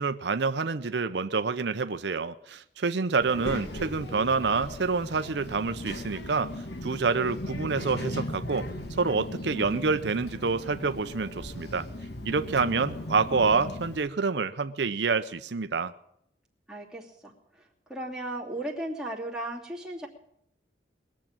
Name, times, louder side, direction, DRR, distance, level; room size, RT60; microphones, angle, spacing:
voice 1, 0.0-6.5 6.8-8.7 9.0-11.9 12.3-15.9, right 4 dB, 75° right, 11 dB, 0.6 m, -27 dB
Child speech kid speaking, 3.2-14.0, left 1 dB, 65° left, 1.9 m, -38 dB
voice 2, 12.6-13.2 16.7-17.3 17.9-20.1, right 1 dB, 5° right, -4 dB, 2.7 m, -36 dB
21.0 x 7.4 x 8.8 m, 0.74 s
head